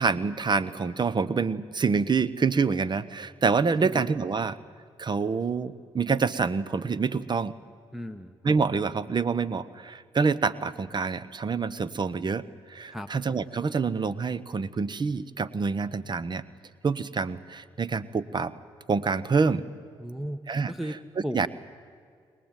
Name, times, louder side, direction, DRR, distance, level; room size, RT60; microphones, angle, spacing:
voice 1, 0.0-4.6 5.0-7.5 8.4-16.4 16.8-18.5 18.9-19.6 20.5-20.7 21.2-21.5, right 5 dB, 45° right, 17 dB, 1.1 m, -27 dB
voice 2, 7.9-8.3 12.9-13.1 20.0-20.4 20.7-21.0 21.2-21.5, equal, 5° right, 4 dB, 1.2 m, -34 dB
22.5 x 20.5 x 9.1 m, 2.2 s
supercardioid pair, 50°, 11 cm